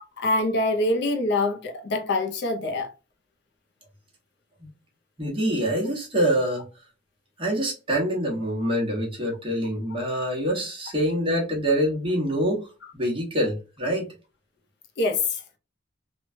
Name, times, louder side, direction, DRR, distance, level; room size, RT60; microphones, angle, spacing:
voice 1, 0.2-2.9 15.0-15.4, left 2 dB, 50° left, 0.5 m, -24 dB
voice 2, 5.2-6.6 7.4-12.7 12.9-14.1, equal, 25° right, 0.9 m, -25 dB
3.0 x 2.2 x 2.5 m
head